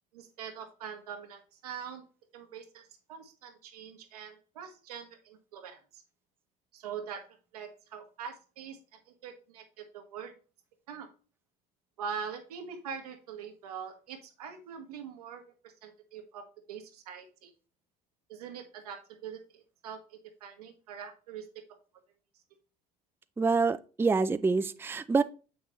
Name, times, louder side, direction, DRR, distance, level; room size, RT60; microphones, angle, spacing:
voice 1, 0.1-2.0 2.3-6.0 6.7-7.2 7.5-8.8 9.1-10.3 10.9-11.1 12.0-17.5 18.3-21.5, right 7 dB, 90° right, 1.4 m, -43 dB
voice 2, 23.4-25.2, right 4 dB, 10° right, 0.4 m, -26 dB
7.3 x 6.0 x 3.1 m
hypercardioid pair, 70°, 19 cm